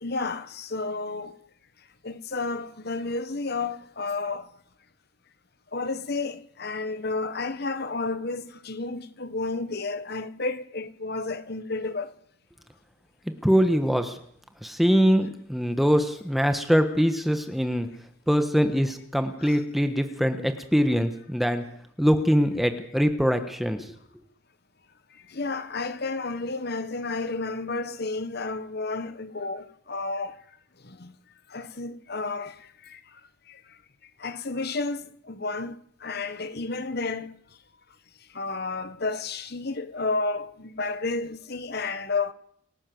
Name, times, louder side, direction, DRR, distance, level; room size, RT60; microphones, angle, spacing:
voice 1, 0.0-1.4 2.0-4.5 5.7-12.1 19.4-19.6 25.3-30.4 30.8-31.1 31.5-33.2 33.5-33.6 34.2-37.3 38.3-42.3, left 3 dB, 50° left, 1.3 m, -31 dB
voice 2, 13.4-14.2 14.6-17.9 18.3-21.6 22.0-23.8, equal, ahead, 1.3 m, -23 dB
28.5 x 12.0 x 7.8 m
head